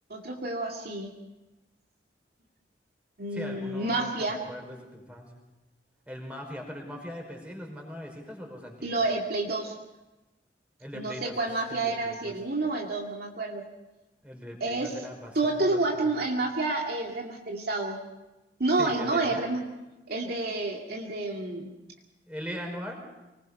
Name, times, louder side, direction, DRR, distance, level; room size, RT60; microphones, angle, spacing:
voice 1, 0.1-1.1 3.2-4.4 8.8-9.7 10.9-13.6 14.6-14.9 15.3-18.0 18.6-19.6 20.1-21.7, right 2 dB, 60° right, 0 dB, 2.3 m, -29 dB
voice 2, 3.3-5.3 6.1-9.0 10.8-12.3 14.2-16.1 18.8-19.4 22.3-23.0, equal, 5° right, 1 dB, 5.1 m, -40 dB
24.5 x 20.5 x 5.5 m, 1.0 s
head